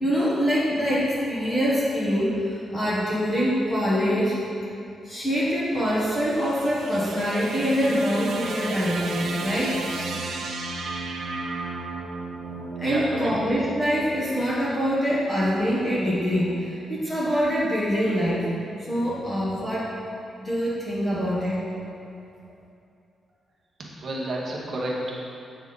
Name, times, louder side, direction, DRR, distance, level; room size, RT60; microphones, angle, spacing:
voice 1, 0.0-4.3 5.0-9.9 12.4-18.4 18.9-19.9 20.4-21.8, equal, 15° left, -8 dB, 1.0 m, -24 dB
sound 1, 5.7-14.0, right 3 dB, 70° right, 0.5 m, -34 dB
voice 2, 12.8-13.3 23.8-25.1, right 1 dB, 40° right, -3 dB, 1.0 m, -30 dB
8.2 x 3.6 x 3.9 m, 2.6 s
wide cardioid pair, 165°, 0 cm